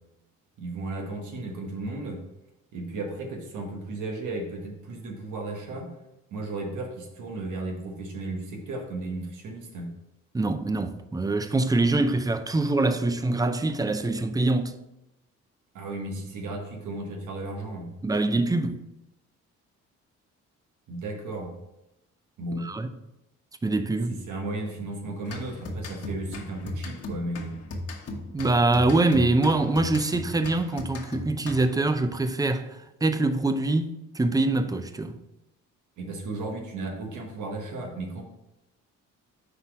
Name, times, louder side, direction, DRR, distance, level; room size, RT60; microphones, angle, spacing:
voice 1, 0.6-2.2 2.7-5.9 6.3-9.9 15.7-17.9 20.9-21.5 22.4-22.7 24.1-27.6 36.0-38.2, right 2 dB, 80° right, 1.4 m, -34 dB
voice 2, 10.3-14.8 18.0-18.8 22.6-22.9 23.6-24.2 28.3-35.2, right 2 dB, 10° right, 0.5 m, -24 dB
sound 1, 25.3-31.9, left 2 dB, 50° left, 1.2 m, -37 dB
5.7 x 4.1 x 4.7 m
cardioid pair, 90°, 30 cm